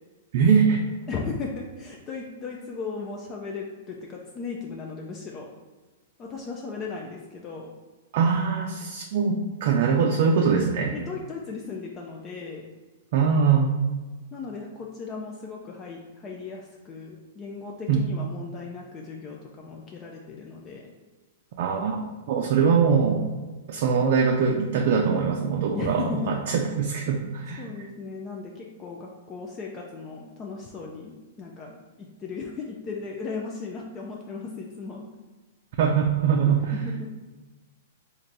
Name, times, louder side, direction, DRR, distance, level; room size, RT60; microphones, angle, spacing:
voice 1, 0.3-0.8 8.1-11.0 13.1-13.7 17.9-18.2 21.6-22.0 22.3-23.2 23.7-27.9 35.8-36.8, right 6 dB, 55° right, 1 dB, 0.4 m, -22 dB
voice 2, 1.1-5.5 6.2-7.7 10.9-12.7 14.3-20.9 25.7-26.4 27.6-31.8 32.2-35.1 36.8-37.1, left 4 dB, 25° left, -1 dB, 0.4 m, -36 dB
3.2 x 2.5 x 3.9 m, 1.3 s
hypercardioid pair, 140°, 0 cm